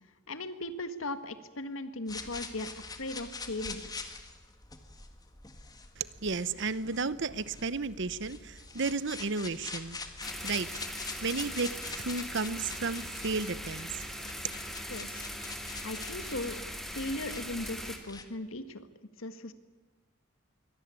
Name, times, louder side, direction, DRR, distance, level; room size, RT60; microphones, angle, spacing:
voice 1, 0.3-3.8 14.9-15.3 15.8-16.6 16.9-18.9 19.2-19.5, left 2 dB, 90° left, 11 dB, 1.8 m, -38 dB
sound 1, 2.1-18.2, left 4 dB, 20° left, 1.9 m, -45 dB
voice 2, 6.0-10.0 10.4-14.7, right 4 dB, 60° right, 16 dB, 0.9 m, -34 dB
sound 2, 10.2-18.0, equal, ahead, 2.5 m, -41 dB
23.0 x 18.0 x 9.7 m, 1.3 s
head